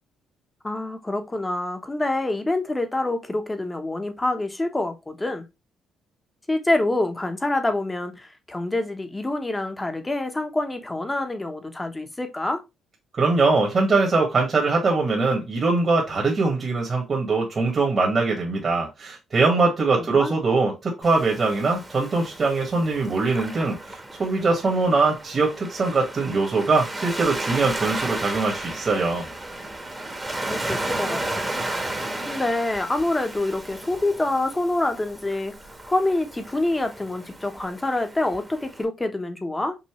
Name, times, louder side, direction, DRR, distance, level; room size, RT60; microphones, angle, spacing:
voice 1, 0.6-5.4 6.5-12.6 20.0-20.3 30.4-31.5 32.3-35.6 35.9-39.8, left 2 dB, 15° left, 1.0 m, -26 dB
voice 2, 13.2-29.3, right 3 dB, 40° right, 1.6 m, -22 dB
Waves surf, 21.0-38.8, right 1 dB, 15° right, 1.1 m, -34 dB
5.5 x 2.6 x 3.0 m
cardioid pair, 90°, 0 cm